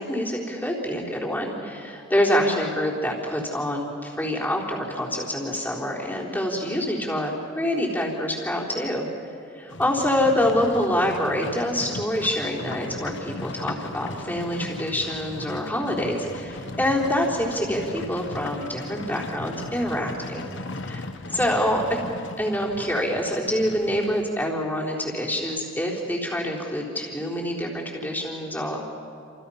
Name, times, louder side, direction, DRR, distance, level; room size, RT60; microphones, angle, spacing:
voice 1, 0.0-9.1 9.6-20.5 20.8-22.0 22.4-28.8, left 1 dB, 10° left, -3 dB, 4.0 m, -26 dB
Livestock farm animals working animals, 9.7-24.3, left 2 dB, 65° left, 1.3 m, -38 dB
28.5 x 28.5 x 5.8 m, 2.6 s
head